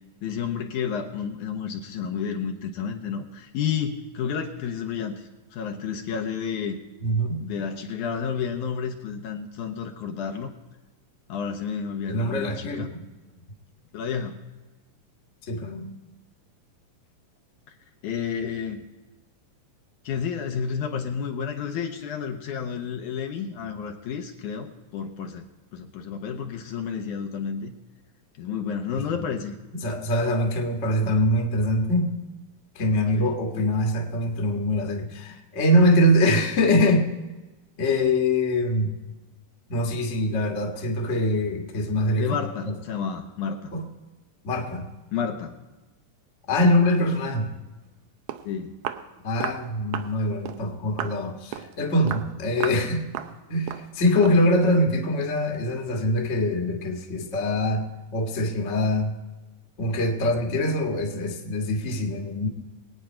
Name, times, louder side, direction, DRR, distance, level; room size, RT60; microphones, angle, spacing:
voice 1, 0.2-6.8 7.4-10.5 11.3-12.9 13.9-14.4 17.7-17.8 18.0-18.9 20.0-25.5 25.7-27.7 28.4-29.6 33.1-33.3 42.2-43.7 45.1-45.6 46.6-46.7 48.4-48.8, left 7 dB, 70° left, 4 dB, 2.1 m, -31 dB
voice 2, 7.0-7.4 12.1-13.0 15.5-15.9 29.0-29.2 29.7-32.1 32.7-37.1 37.8-39.0 39.7-42.4 42.6-42.7 43.7-43.8 44.4-44.9 46.5-47.6 49.2-53.0 53.5-59.2 59.8-62.5, left 1 dB, 35° left, 1 dB, 1.2 m, -23 dB
Walk footsteps, 48.0-48.1 48.3-48.5 48.9-49.1 49.4-49.6 49.9-50.1 50.5-50.6 51.0-51.2 51.5-51.7 52.1-52.3 52.6-52.9 53.2-53.4 53.7-53.9 54.2-54.4, right 11 dB, 85° right, 2.4 m, -33 dB
23.0 x 9.1 x 4.4 m, 1.1 s
omnidirectional pair, 3.9 m